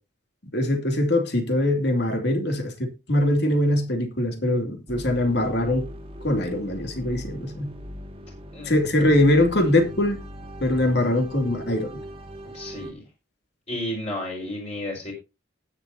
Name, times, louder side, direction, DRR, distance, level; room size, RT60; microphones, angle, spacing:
voice 1, 0.5-5.9 6.2-7.8 8.6-10.2 10.6-12.0, left 1 dB, 55° left, 2.8 m, -22 dB
sound 1, 4.9-12.9, equal, 30° right, 1.9 m, -39 dB
voice 2, 12.5-13.0 13.7-15.1, left 1 dB, 35° left, 4.7 m, -32 dB
19.0 x 7.0 x 2.8 m
head